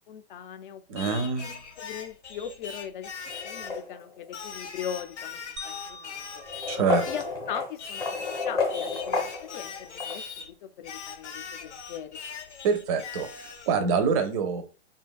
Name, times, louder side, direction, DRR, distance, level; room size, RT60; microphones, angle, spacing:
voice 1, 0.0-1.1 1.4-3.1 3.4-6.4 7.1-12.2, left 9 dB, 50° left, 9 dB, 0.4 m, -40 dB
voice 2, 0.9-1.5 6.7-7.1 12.6-14.6, right 5 dB, 30° right, 8 dB, 0.4 m, -26 dB
Singing, 1.0-3.8 4.3-7.3 7.8-10.5 10.8-13.7, left 6 dB, 85° left, 0.7 m, -40 dB
sound 1, 3.3-4.3 5.3-5.4 6.4-10.2, left 4 dB, 10° left, 0.6 m, -31 dB
sound 2, 5.6-7.9, left 2 dB, 85° right, 0.5 m, -45 dB
2.5 x 2.2 x 2.2 m, 0.36 s
hypercardioid pair, 125°, 34 cm